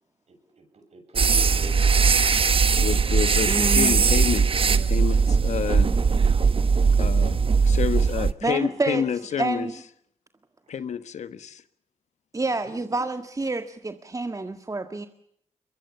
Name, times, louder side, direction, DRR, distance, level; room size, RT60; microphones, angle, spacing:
voice 1, 0.3-2.6 10.6-10.7 12.5-12.8, right 2 dB, 65° right, 5 dB, 7.6 m, -46 dB
sound 1, 1.2-8.3, right 5 dB, 50° right, 1.1 m, -20 dB
voice 2, 2.8-5.9 7.0-9.7 10.7-11.6, left 8 dB, 75° left, 13 dB, 1.3 m, -29 dB
voice 3, 3.5-4.1 7.0-7.1 8.4-9.0 9.4-9.7 12.3-15.1, right 2 dB, 30° right, 8 dB, 1.7 m, -28 dB
23.0 x 21.5 x 6.9 m, 0.71 s
cardioid pair, 55°, 12 cm